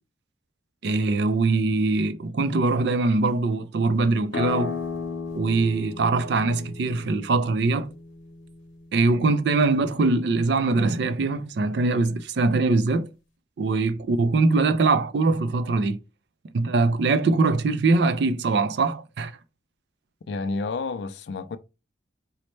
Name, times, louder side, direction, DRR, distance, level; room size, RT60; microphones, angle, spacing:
voice 1, 0.8-4.8 5.3-7.9 8.9-13.1 13.6-16.0 16.5-19.3, right 3 dB, 60° right, 0.4 m, -22 dB
sound 1, 4.3-9.7, left 5 dB, 85° left, 0.8 m, -35 dB
voice 2, 20.3-21.6, left 3 dB, 65° left, 0.3 m, -30 dB
4.0 x 2.1 x 3.1 m
head